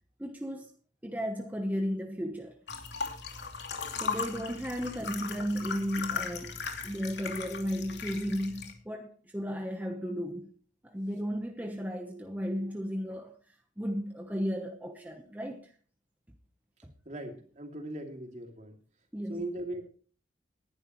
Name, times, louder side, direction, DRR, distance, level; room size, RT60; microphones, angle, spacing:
voice 1, 0.2-0.7 1.0-2.6 4.0-6.6 6.8-10.5 10.8-13.3 13.8-15.7 16.8-16.9 19.1-19.4, equal, 10° right, 1.1 m, -34 dB
sound 1, 2.7-8.7, left 5 dB, 65° left, 2.7 m, -37 dB
voice 2, 17.0-18.8 19.3-19.8, right 1 dB, 40° right, 2.7 m, -39 dB
19.5 x 11.0 x 3.1 m
head